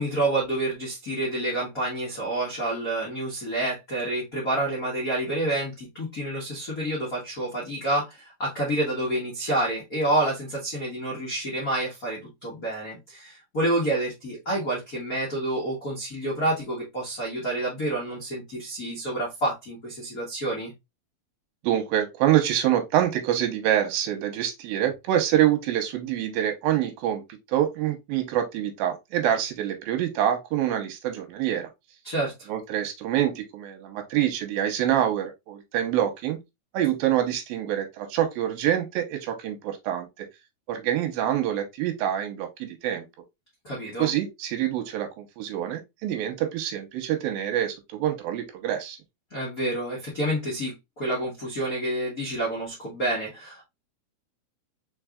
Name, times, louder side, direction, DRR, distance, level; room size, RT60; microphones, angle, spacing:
voice 1, 0.0-20.7 32.0-32.5 43.6-44.1 49.3-53.6, right 1 dB, 70° left, 0.8 m, -28 dB
voice 2, 21.6-27.2 27.5-31.7 32.5-36.4 36.7-40.3 40.7-43.1 44.0-49.0, right 11 dB, 85° right, 2.6 m, -26 dB
4.6 x 4.5 x 2.4 m
omnidirectional pair, 4.2 m